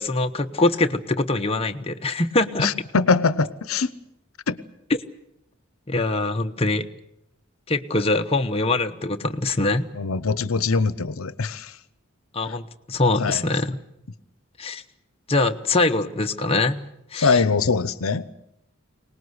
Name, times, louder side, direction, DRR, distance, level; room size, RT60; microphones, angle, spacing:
voice 1, 0.0-2.7 5.9-6.9 7.7-9.9 12.3-13.8 14.6-14.8 15.3-17.4, left 2 dB, 30° left, 5 dB, 1.0 m, -23 dB
voice 2, 2.6-3.9 4.5-4.6 9.9-11.7 13.2-13.4 17.2-18.3, left 4 dB, 90° left, 16 dB, 0.8 m, -22 dB
24.0 x 19.5 x 8.0 m, 0.80 s
head